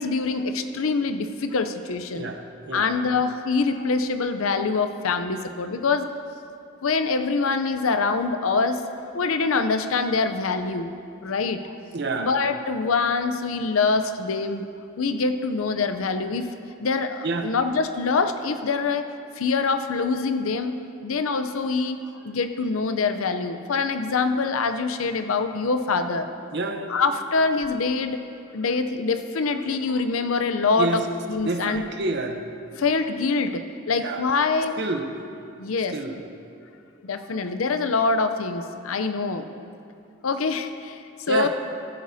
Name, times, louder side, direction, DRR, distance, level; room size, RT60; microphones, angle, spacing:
voice 1, 0.0-2.3 2.7-6.1 6.8-8.8 9.1-10.9 11.2-11.7 12.2-14.7 15.0-16.5 16.8-19.1 19.4-26.3 26.9-28.2 28.5-31.0 31.3-31.8 32.8-34.8 35.6-35.9 37.0-39.5 40.2-41.0 41.3-41.5, left 4 dB, 80° left, 9 dB, 0.6 m, -24 dB
voice 2, 11.9-12.3 17.2-17.5 26.5-27.0 30.8-31.0 31.4-32.8 34.0-34.2 34.8-35.1 35.9-36.3 41.3-41.5, right 3 dB, 55° right, 5 dB, 0.8 m, -28 dB
15.5 x 10.5 x 2.7 m, 2.5 s
head